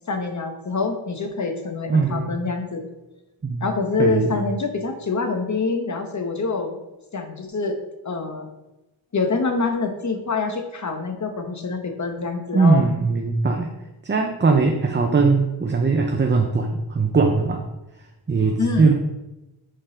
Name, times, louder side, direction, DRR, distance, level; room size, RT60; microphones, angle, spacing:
voice 1, 0.1-2.8 3.6-6.8 7.1-7.8 8.0-8.5 9.1-12.8 18.6-18.9, left 4 dB, 40° left, 5 dB, 1.0 m, -25 dB
voice 2, 1.9-2.4 3.4-3.6 4.0-4.3 12.5-13.7 14.0-17.6 18.3-18.9, right 4 dB, 25° right, 3 dB, 0.6 m, -20 dB
6.6 x 3.8 x 5.0 m, 1.0 s
wide cardioid pair, 95°, 47 cm